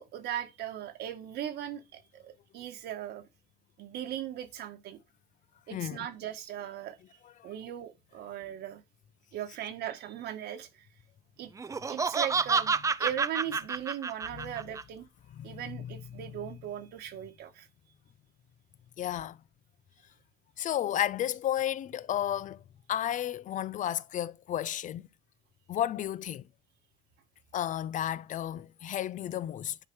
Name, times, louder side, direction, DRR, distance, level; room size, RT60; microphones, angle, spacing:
voice 1, 0.0-3.2 3.8-5.0 5.7-7.0 7.4-8.8 9.3-10.8 11.4-11.5 11.9-15.1 15.4-17.7, right 11 dB, 75° right, 1.5 m, -38 dB
voice 2, 5.7-6.1 7.4-7.5 14.3-14.5 15.3-16.0 19.0-19.4 20.6-22.6 22.9-25.1 25.7-26.5 27.5-29.8, left 11 dB, 50° left, 0.5 m, -33 dB
Laughter, 11.6-14.8, right 5 dB, 20° right, 0.4 m, -29 dB
10.0 x 4.7 x 4.6 m
cardioid pair, 110°, 17 cm